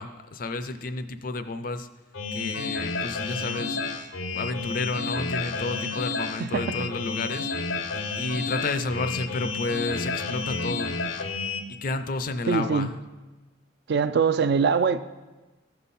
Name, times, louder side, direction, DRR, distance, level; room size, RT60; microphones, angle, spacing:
voice 1, 0.0-1.9 2.3-4.0 4.3-7.5 8.2-10.9 11.8-12.9, left 3 dB, 45° left, 0.4 m, -31 dB
sound 1, 2.1-11.6, left 4 dB, 80° left, 0.7 m, -31 dB
voice 2, 12.5-12.9 13.9-15.0, right 5 dB, 55° right, 0.4 m, -22 dB
14.5 x 5.6 x 4.1 m
head